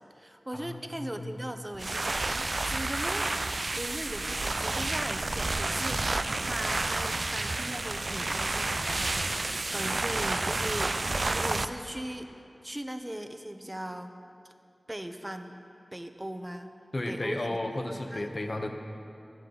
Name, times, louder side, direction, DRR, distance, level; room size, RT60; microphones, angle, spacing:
voice 1, 0.0-11.0 11.3-12.3 12.6-14.1 14.9-15.6 15.9-16.7 17.1-17.6 18.1-18.2, right 1 dB, 20° right, 7 dB, 0.9 m, -39 dB
voice 2, 0.5-1.3 16.9-18.7, left 1 dB, 45° left, 3 dB, 1.2 m, -34 dB
sound 1, 1.7-11.6, right 2 dB, 55° right, 0.4 m, -30 dB
17.0 x 13.0 x 4.0 m, 2.7 s
wide cardioid pair, 50°, 0 cm